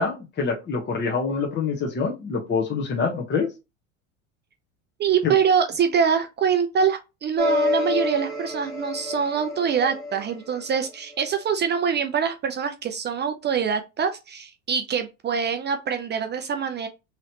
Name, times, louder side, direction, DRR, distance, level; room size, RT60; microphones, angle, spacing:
voice 1, 0.0-3.5 5.2-5.3, left 4 dB, 30° left, 1.0 m, -25 dB
voice 2, 5.0-16.9, right 7 dB, 30° right, 0.4 m, -24 dB
sound 1, 7.4-11.3, left 3 dB, ahead, 1.7 m, -28 dB
3.0 x 3.0 x 2.8 m
hypercardioid pair, 85°, 38 cm